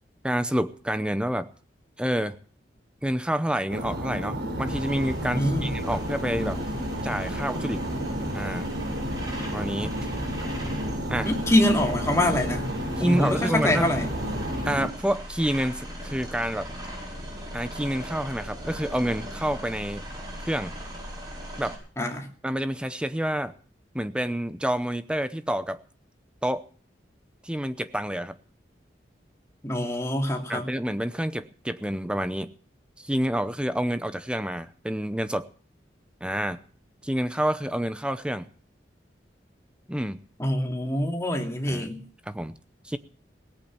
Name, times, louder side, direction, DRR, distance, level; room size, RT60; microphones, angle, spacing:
voice 1, 0.2-1.5 2.0-2.4 3.0-6.6 7.0-7.8 8.3-8.7 9.5-9.9 11.1-11.3 13.0-13.9 14.6-16.7 17.5-20.0 20.5-20.7 21.6-21.8 22.4-23.5 23.9-25.8 26.4-26.6 27.4-28.4 30.5-32.5 33.0-35.5 36.2-36.6 37.0-38.5 39.9-40.2 41.7-41.9 42.3-42.5 42.8-43.0, equal, 5° right, 12 dB, 0.7 m, -28 dB
sound 1, 3.7-14.9, equal, 85° right, 4.0 m, -31 dB
sound 2, 4.7-21.7, equal, 25° right, 5.5 m, -39 dB
voice 2, 5.3-5.7 11.2-12.6 13.0-14.1 22.0-22.3 29.6-30.7 40.4-42.0, left 1 dB, 15° left, 2 dB, 2.6 m, -25 dB
18.0 x 8.7 x 8.7 m, 0.42 s
head